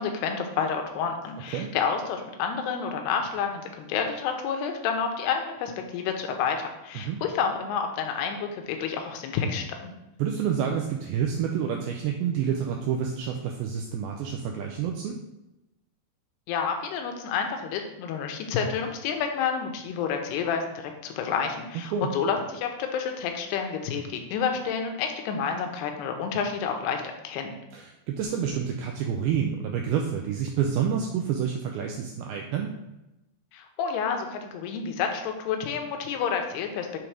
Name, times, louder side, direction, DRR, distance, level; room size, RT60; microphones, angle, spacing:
voice 1, 0.0-9.9 16.5-27.5 33.5-37.0, left 6 dB, 80° left, 4 dB, 2.7 m, -29 dB
voice 2, 10.2-15.2 21.9-22.1 27.7-32.7, right 8 dB, 80° right, 2 dB, 2.2 m, -28 dB
7.7 x 3.6 x 4.7 m, 0.95 s
omnidirectional pair, 4.8 m